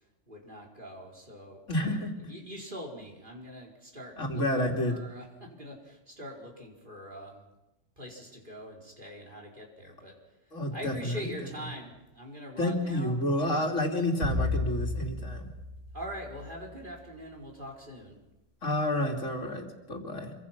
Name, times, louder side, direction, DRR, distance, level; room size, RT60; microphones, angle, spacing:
voice 1, 0.3-2.0 2.3-7.4 8.0-10.1 10.7-13.2 13.5-13.7 15.9-18.2, equal, 40° right, -1 dB, 4.7 m, -43 dB
voice 2, 1.7-2.1 4.2-5.0 10.5-11.3 12.6-15.5 18.6-20.3, left 1 dB, 75° left, 3 dB, 3.1 m, -30 dB
sound 1, 14.2-16.7, left 2 dB, 70° right, 7.6 m, -33 dB
26.0 x 24.0 x 5.9 m, 0.97 s
omnidirectional pair, 1.3 m